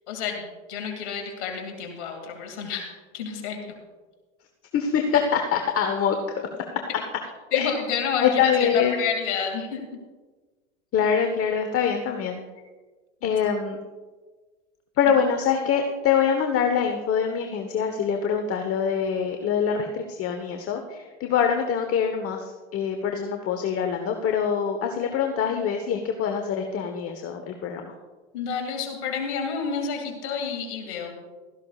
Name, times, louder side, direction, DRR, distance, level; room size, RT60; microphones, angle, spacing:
voice 1, 0.1-3.6 7.5-9.8 13.2-13.4 28.3-31.2, left 6 dB, 75° left, 3 dB, 2.5 m, -30 dB
voice 2, 4.7-6.5 7.5-7.7 8.2-8.9 10.9-12.4 13.2-13.8 15.0-27.9, left 7 dB, 40° left, 5 dB, 1.2 m, -24 dB
16.0 x 14.0 x 2.4 m, 1.3 s
hypercardioid pair, 90°, 34 cm